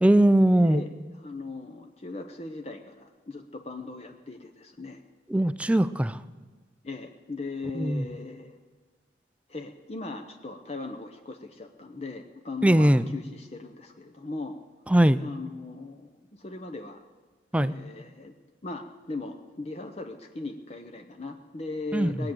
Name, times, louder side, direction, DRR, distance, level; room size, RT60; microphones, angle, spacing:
voice 1, 0.0-0.8 5.3-6.2 7.8-8.0 12.6-13.1 14.9-15.2 17.5-17.7 21.9-22.1, right 1 dB, 5° right, 14 dB, 0.4 m, -20 dB
voice 2, 0.6-5.0 6.8-8.6 9.5-14.5 15.2-17.0 17.5-18.3 18.6-22.3, left 3 dB, 35° left, 5 dB, 0.8 m, -38 dB
19.5 x 8.7 x 7.7 m, 1.4 s
head